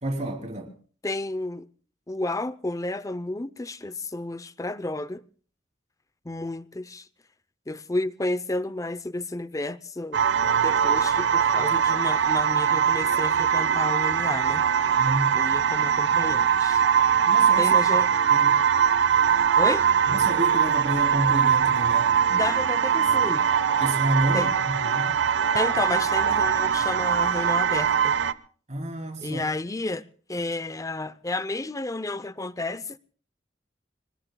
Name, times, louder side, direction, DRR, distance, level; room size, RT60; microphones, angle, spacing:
voice 1, 0.0-0.7 15.0-15.4 17.3-17.7 18.3-18.6 20.1-22.2 23.7-25.2 28.7-29.4, right 1 dB, 40° right, 3.4 m, -29 dB
voice 2, 1.0-1.7 2.1-5.2 6.2-7.1 7.7-10.2 10.6-14.6 15.3-16.8 17.6-18.1 19.6-19.8 22.3-23.4 24.3-24.5 25.5-28.2 29.2-30.0 30.3-33.0, left 2 dB, 20° left, 0.6 m, -31 dB
sound 1, 10.1-28.3, right 8 dB, 75° right, 0.8 m, -22 dB
26.0 x 21.0 x 2.3 m
head